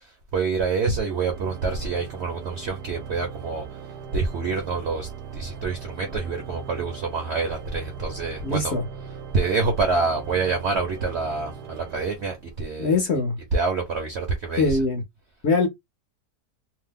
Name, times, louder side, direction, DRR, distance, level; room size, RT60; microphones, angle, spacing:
voice 1, 0.0-8.7 9.3-13.0 13.5-14.8, right 4 dB, 60° right, 0.7 m, -27 dB
Organ, 1.0-12.8, right 6 dB, 85° right, 1.2 m, -40 dB
voice 2, 8.4-8.8 12.8-13.4 14.6-15.0 15.4-15.7, left 3 dB, 55° left, 0.8 m, -22 dB
2.8 x 2.0 x 3.4 m
omnidirectional pair, 1.7 m